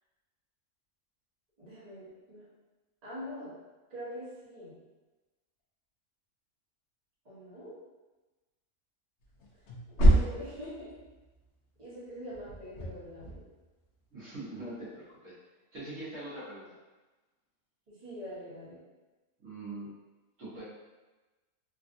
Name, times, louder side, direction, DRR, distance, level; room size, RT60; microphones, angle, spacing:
voice 1, 1.6-2.5 3.0-3.6 3.9-4.7 7.2-7.7 9.9-11.0 11.8-13.4 17.9-18.8, equal, 30° right, -10 dB, 1.0 m, -44 dB
sound 1, 9.2-11.4 12.3-13.5, equal, 60° left, 0.8 m, -27 dB
voice 2, 14.1-15.3 15.7-16.7 19.4-19.9 20.4-20.6, right 2 dB, 60° right, -10 dB, 1.3 m, -42 dB
3.4 x 2.3 x 2.5 m, 1.2 s
omnidirectional pair, 1.6 m